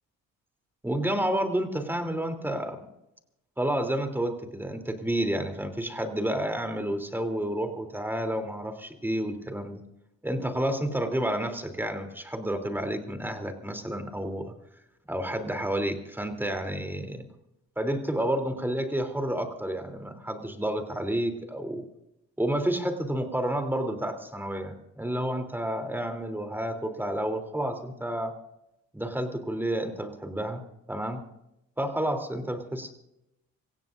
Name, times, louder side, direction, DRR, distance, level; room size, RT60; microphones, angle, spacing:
voice 1, 0.8-2.9 3.6-9.8 10.2-14.5 15.1-17.2 17.8-21.8 22.4-28.3 28.9-30.6 30.9-31.2 31.8-32.9, right 1 dB, 5° right, 5 dB, 3.3 m, -30 dB
27.0 x 16.0 x 2.7 m, 0.85 s
cardioid pair, 90°, 30 cm